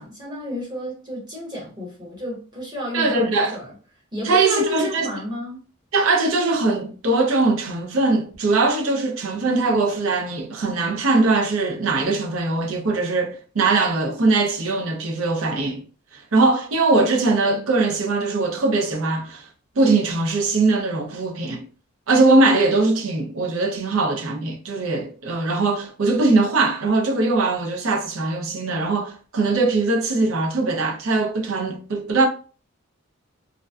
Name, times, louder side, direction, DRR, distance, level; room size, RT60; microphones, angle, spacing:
voice 1, 0.0-3.7 4.1-5.6, left 1 dB, 20° right, 1.0 m, -30 dB
voice 2, 2.9-3.6 4.2-5.1 5.9-15.8 16.1-19.5 19.8-21.6 22.1-32.3, right 3 dB, 75° right, 0.5 m, -21 dB
2.5 x 2.2 x 2.3 m
head